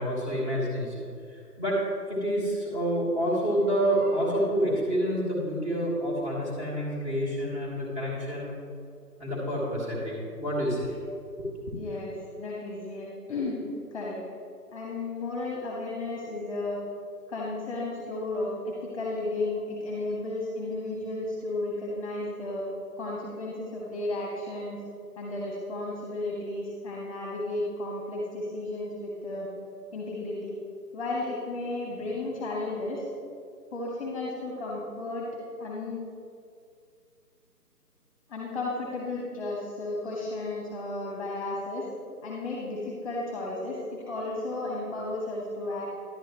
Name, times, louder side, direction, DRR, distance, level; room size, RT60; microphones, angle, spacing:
voice 1, 0.0-8.5 9.2-11.0 11.4-11.7, equal, 20° right, -5 dB, 2.0 m, -28 dB
voice 2, 11.8-13.7 13.9-14.2 14.7-16.8 17.3-22.7 23.0-24.8 25.2-29.5 29.9-30.6 30.9-33.1 33.7-35.3 35.6-36.0 38.3-41.9 42.2-45.9, left 2 dB, 20° left, -4 dB, 1.2 m, -33 dB
11.0 x 8.9 x 3.1 m, 2.3 s
figure-of-eight pair, 155°, 48 cm